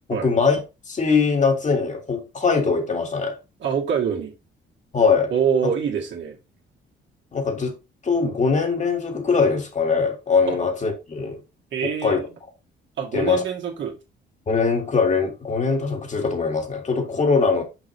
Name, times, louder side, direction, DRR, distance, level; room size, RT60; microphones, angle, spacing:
voice 1, 0.1-0.6 0.9-3.4 4.9-5.3 7.3-7.7 8.0-11.4 11.8-12.2 13.1-13.4 14.5-17.6, left 4 dB, 35° left, 1.7 m, -21 dB
voice 2, 3.6-4.3 5.3-6.4 10.5-10.6 11.7-12.2 13.0-14.0, right 7 dB, 70° right, 1.9 m, -25 dB
6.1 x 5.2 x 3.1 m
cardioid pair, 90°, 20 cm